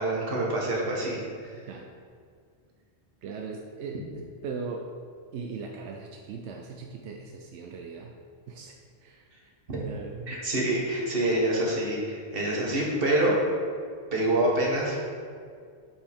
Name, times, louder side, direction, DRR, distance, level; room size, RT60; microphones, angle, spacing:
voice 1, 0.0-1.5 9.7-9.8 10.3-13.4 14.1-15.0, right 1 dB, 55° right, -3 dB, 1.5 m, -26 dB
voice 2, 1.5-1.9 3.2-4.9 5.3-8.1 8.5-10.5, right 4 dB, 85° right, 2 dB, 0.9 m, -39 dB
7.1 x 5.4 x 3.5 m, 2.1 s
omnidirectional pair, 1.1 m